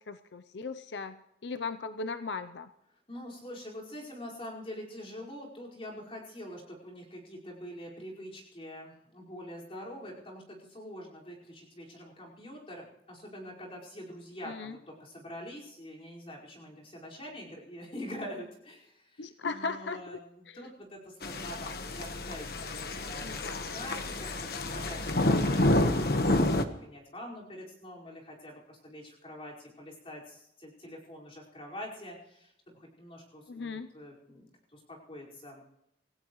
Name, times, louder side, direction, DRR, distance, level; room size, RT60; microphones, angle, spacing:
voice 1, 0.0-2.7 14.4-14.8 19.2-20.2 20.5-20.7 23.2-23.7 33.5-33.9, left 4 dB, 85° left, 10 dB, 0.7 m, -38 dB
voice 2, 3.1-35.7, equal, 35° left, -4 dB, 5.1 m, -45 dB
sound 1, 21.2-26.6, left 1 dB, 60° left, 1.3 m, -29 dB
27.0 x 15.5 x 3.2 m, 0.79 s
head